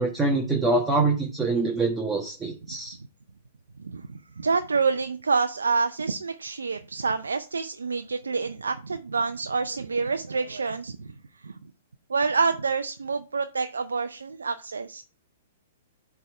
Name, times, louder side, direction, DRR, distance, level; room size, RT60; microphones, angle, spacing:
voice 1, 0.0-2.9, right 3 dB, 10° right, -1 dB, 1.3 m, -25 dB
voice 2, 3.8-11.1 11.4-11.5 12.1-15.0, right 4 dB, 85° right, 9 dB, 0.5 m, -27 dB
7.5 x 3.5 x 4.7 m, 0.34 s
hypercardioid pair, 120°, 0 cm